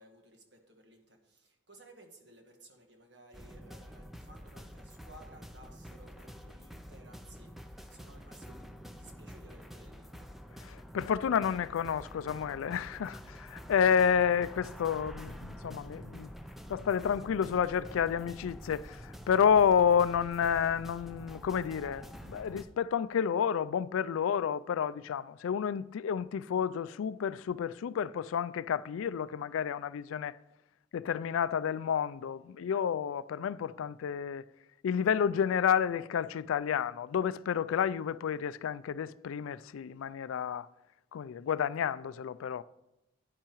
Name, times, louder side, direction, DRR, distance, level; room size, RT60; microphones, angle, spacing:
voice 1, 0.0-10.3 13.9-14.0, right 1 dB, 55° right, 1.6 m, -57 dB
sound 1, 3.3-22.6, equal, ahead, 0.5 m, -47 dB
voice 2, 10.6-16.3 16.7-30.4 30.9-34.4 34.8-40.7 41.1-42.6, left 7 dB, 90° left, 0.3 m, -30 dB
10.0 x 9.8 x 3.1 m
head